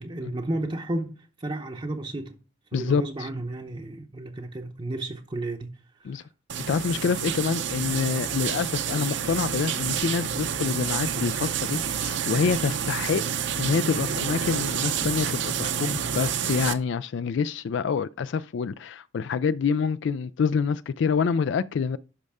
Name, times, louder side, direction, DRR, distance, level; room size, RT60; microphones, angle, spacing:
voice 1, 0.0-2.4 2.7-6.3, right 1 dB, 25° right, 0.7 m, -33 dB
voice 2, 2.7-3.3 6.0-6.2 6.7-13.2 13.6-22.0, left 6 dB, 70° left, 0.3 m, -27 dB
sound 1, 6.5-16.7, right 8 dB, 65° right, 0.7 m, -29 dB
11.5 x 5.3 x 3.6 m
head